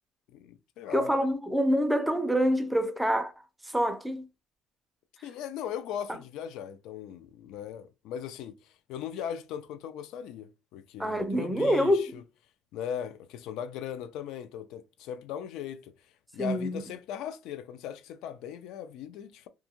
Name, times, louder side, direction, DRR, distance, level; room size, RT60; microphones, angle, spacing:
voice 1, 0.3-1.1 5.2-8.6 8.9-12.2 12.7-15.9 16.3-19.5, left 9 dB, 75° left, 0.3 m, -38 dB
voice 2, 0.9-3.3 3.7-4.3 11.0-12.1 16.4-16.8, equal, 5° right, 0.4 m, -26 dB
2.5 x 2.3 x 2.8 m
cardioid pair, 120°, 0 cm